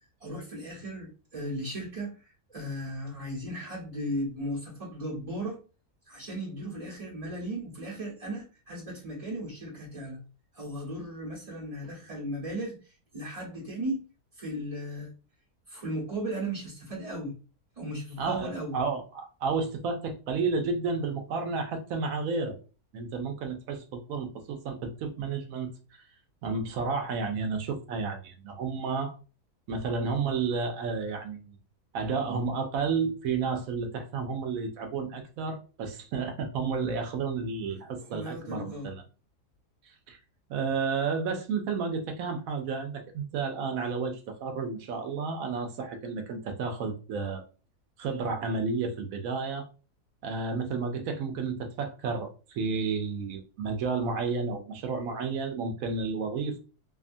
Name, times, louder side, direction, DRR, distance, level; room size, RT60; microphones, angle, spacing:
voice 1, 0.2-2.2 2.5-5.6 6.1-10.2 10.5-12.8 13.1-14.1 14.4-15.1 15.7-17.4 17.8-18.7 38.1-38.9, right 1 dB, 25° right, -5 dB, 1.0 m, -36 dB
voice 2, 18.2-22.6 22.9-25.7 26.4-29.1 29.7-31.6 31.9-39.0 40.1-40.2 40.5-47.4 48.0-49.7 50.2-56.6, right 4 dB, 70° right, 5 dB, 0.9 m, -31 dB
2.7 x 2.3 x 2.5 m, 0.35 s
omnidirectional pair, 1.6 m